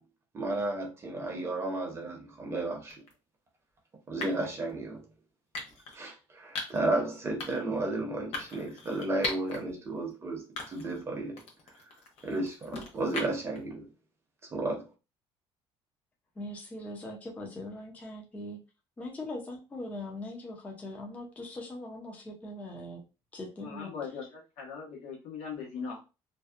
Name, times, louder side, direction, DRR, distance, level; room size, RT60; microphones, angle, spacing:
voice 1, 0.3-3.0 4.1-5.0 5.9-11.4 11.7-11.8 12.2-13.9 14.5-14.8, right 2 dB, 25° right, 0.7 m, -33 dB
sound 1, 2.9-3.1 4.2-4.5 5.5-6.0 6.6-6.9 7.4-7.7 8.3-9.6 10.0-10.1 10.6-11.0 11.4-13.6, left 3 dB, 65° left, 0.8 m, -39 dB
voice 2, 16.4-18.6 19.0-23.0 23.3-23.9, left 1 dB, 15° left, 0.5 m, -41 dB
voice 3, 23.6-26.0, left 5 dB, 85° left, 1.1 m, -40 dB
2.6 x 2.1 x 2.3 m
cardioid pair, 165°, 11 cm